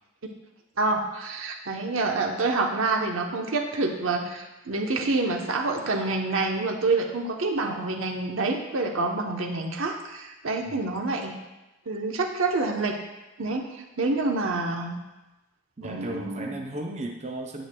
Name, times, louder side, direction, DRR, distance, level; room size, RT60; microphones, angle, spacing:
voice 1, 0.8-11.4 11.9-13.0 13.4-15.0 15.8-16.5, right 3 dB, 80° right, 2 dB, 0.9 m, -27 dB
voice 2, 15.8-17.7, right 2 dB, 30° right, 1 dB, 0.6 m, -35 dB
10.5 x 8.1 x 2.3 m, 1.0 s
head